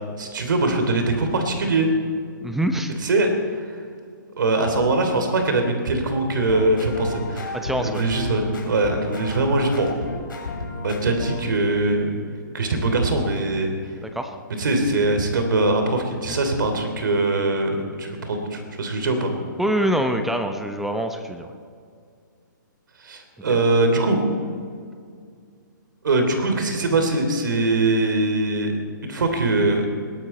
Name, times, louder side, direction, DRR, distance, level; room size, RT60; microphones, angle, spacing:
voice 1, 0.2-1.9 3.0-3.3 3.6-3.7 4.4-9.9 10.8-12.1 12.5-13.7 14.6-19.3 23.0-24.2 26.0-28.8 29.0-29.9, right 2 dB, 75° right, 5 dB, 3.2 m, -22 dB
voice 2, 2.4-2.9 7.5-8.0 14.0-14.4 19.6-21.5 23.5-23.6, right 1 dB, 5° right, 6 dB, 0.9 m, -25 dB
sound 1, 6.3-11.5, left 2 dB, 90° left, 3.4 m, -32 dB
21.0 x 13.0 x 4.4 m, 2.2 s
hypercardioid pair, 140°, 11 cm